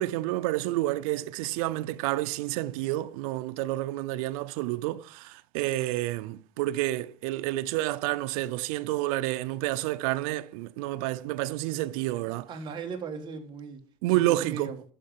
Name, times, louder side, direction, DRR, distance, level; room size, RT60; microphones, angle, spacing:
voice 1, 0.0-12.5 14.0-14.7, right 16 dB, 80° right, 0.6 m, -29 dB
voice 2, 12.5-13.8 14.1-14.8, right 5 dB, 25° right, 1.5 m, -38 dB
12.5 x 5.2 x 7.4 m
cardioid pair, 180°, 18 cm